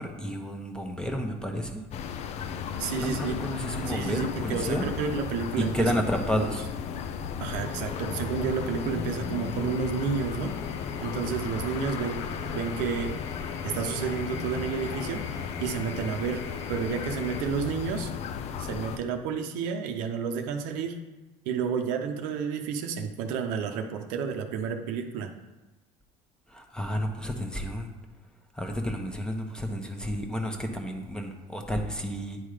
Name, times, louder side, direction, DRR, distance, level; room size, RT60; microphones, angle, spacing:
voice 1, 0.0-1.8 2.9-4.9 5.6-6.7 26.5-27.9 28.5-32.4, equal, 5° left, 3 dB, 1.0 m, -31 dB
sound 1, 1.9-19.0, left 7 dB, 55° left, 0.5 m, -35 dB
voice 2, 2.8-3.4 3.9-5.9 6.3-6.5 7.4-10.5 11.0-13.1 13.6-16.4 16.7-18.1 18.6-21.0 21.4-25.3, right 6 dB, 80° right, 5 dB, 0.7 m, -31 dB
sound 2, 7.5-17.4, left 4 dB, 90° left, 0.9 m, -43 dB
9.3 x 3.6 x 4.9 m, 1.1 s
supercardioid pair, 105°, 14 cm